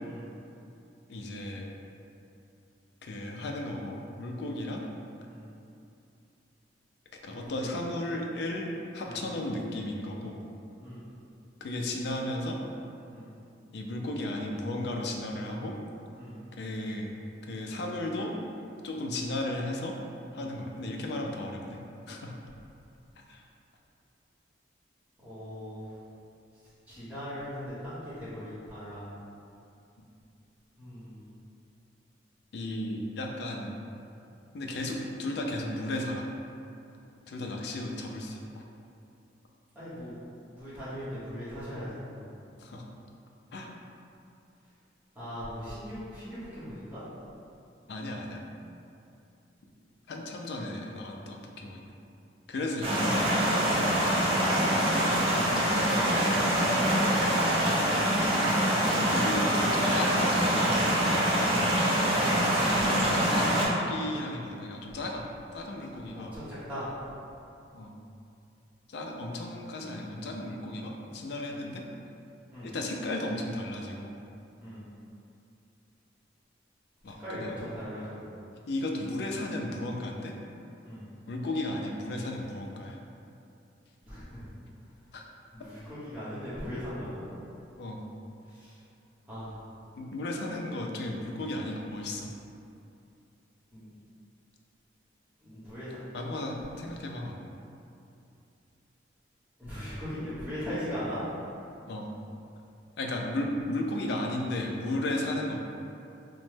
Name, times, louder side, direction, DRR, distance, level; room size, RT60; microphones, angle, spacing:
voice 1, 1.1-1.7 3.0-4.9 7.2-10.4 11.6-12.6 13.7-15.7 16.6-17.1 17.5-18.3 18.8-19.9 20.3-21.8 22.1-22.3 23.3-23.4 32.5-33.8 34.5-36.3 37.3-38.6 42.6-42.9 43.5-43.7 47.9-48.4 50.1-51.8 52.5-53.3 59.0-61.6 63.0-65.2 65.5-66.3 67.7-67.9 68.9-71.8 72.6-74.1 77.0-77.6 78.7-80.3 81.3-83.0 85.1-85.2 87.8-88.0 90.0-92.3 96.1-97.4 101.9-102.1 103.0-105.7, left 1 dB, 60° left, 1 dB, 0.3 m, -34 dB
voice 2, 7.3-7.7 9.1-9.2 10.8-11.0 13.1-13.3 16.2-16.4 20.3-20.5 25.2-26.0 26.9-29.0 30.8-31.3 39.7-40.1 40.5-42.3 45.1-47.0 62.7-62.9 66.1-66.9 71.5-71.6 72.5-72.7 74.6-74.8 77.2-78.2 80.8-81.0 84.1-84.4 85.5-87.2 88.5-88.7 89.3-89.6 93.7-93.9 95.4-96.0 99.6-101.2, equal, 10° right, -13 dB, 0.9 m, -40 dB
sound 1, 52.8-63.7, equal, 30° right, 0.5 m, -25 dB
3.0 x 2.1 x 3.2 m, 2.6 s
head